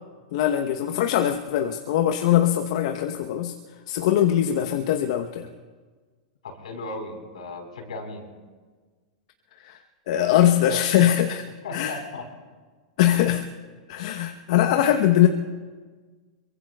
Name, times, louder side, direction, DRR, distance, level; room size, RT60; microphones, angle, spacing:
voice 1, 0.3-3.5 3.9-5.5 9.6-9.8 10.1-11.5 11.7-12.0 13.0-13.5 13.9-15.3, left 11 dB, 60° left, 6 dB, 0.9 m, -21 dB
voice 2, 6.4-8.3 11.6-12.3, left 2 dB, 80° left, 2 dB, 4.2 m, -36 dB
25.0 x 23.5 x 2.3 m, 1.4 s
hypercardioid pair, 105°, 4 cm